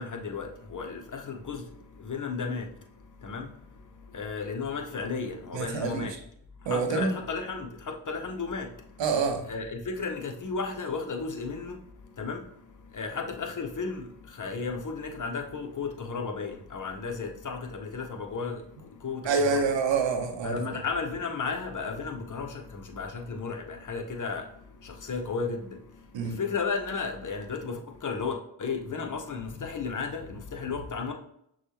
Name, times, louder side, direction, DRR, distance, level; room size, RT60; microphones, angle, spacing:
voice 1, 0.0-1.6 2.0-2.7 3.2-3.5 4.1-6.1 6.7-8.7 9.4-11.8 12.2-12.4 12.9-14.0 14.3-18.6 19.0-19.6 20.4-24.4 24.8-25.7 26.4-31.1, left 4 dB, 45° left, 0.9 m, -34 dB
voice 2, 5.5-6.2 6.7-7.2 9.0-9.5 19.2-20.6 26.1-26.4, right 4 dB, 75° right, 0.9 m, -27 dB
5.9 x 2.4 x 2.9 m
supercardioid pair, 45°, 45 cm